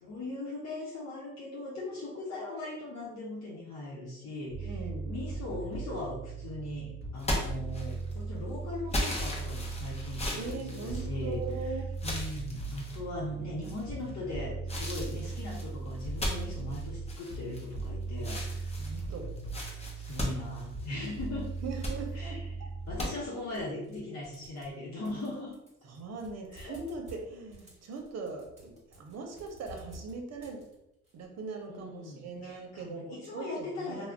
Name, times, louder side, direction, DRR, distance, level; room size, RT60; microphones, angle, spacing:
voice 1, 0.0-4.8 5.1-18.7 19.9-21.5 22.1-22.5 22.9-25.6 26.5-26.8 31.7-34.1, left 2 dB, 60° left, -6 dB, 0.8 m, -39 dB
sound 1, 4.5-23.0, right 3 dB, 45° left, 1.2 m, -38 dB
voice 2, 4.6-5.2 10.3-12.0 16.2-16.7 18.8-19.3 21.6-22.7 25.8-30.6 31.1-34.1, right 4 dB, 60° right, 3 dB, 0.7 m, -41 dB
sound 2, 7.2-8.2 8.9-11.5 12.0-13.0 13.6-14.1 14.7-17.9 18.2-21.2 21.6-22.0 23.0-23.1, left 1 dB, 20° left, 0.8 m, -36 dB
sound 3, 23.5-24.8 25.1-31.1, equal, 20° right, 1.3 m, -53 dB
2.4 x 2.1 x 3.4 m, 0.85 s
cardioid pair, 90°, 30 cm